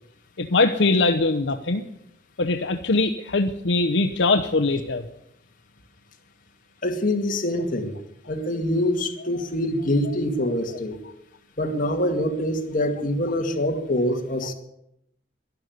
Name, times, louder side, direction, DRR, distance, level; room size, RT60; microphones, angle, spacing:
voice 1, 0.4-1.8 2.4-5.0 9.2-9.4, left 3 dB, 70° left, 6 dB, 0.8 m, -22 dB
voice 2, 6.8-7.9 8.3-11.0 11.6-14.5, left 1 dB, 45° left, 3 dB, 2.2 m, -25 dB
12.5 x 11.5 x 9.4 m, 0.81 s
head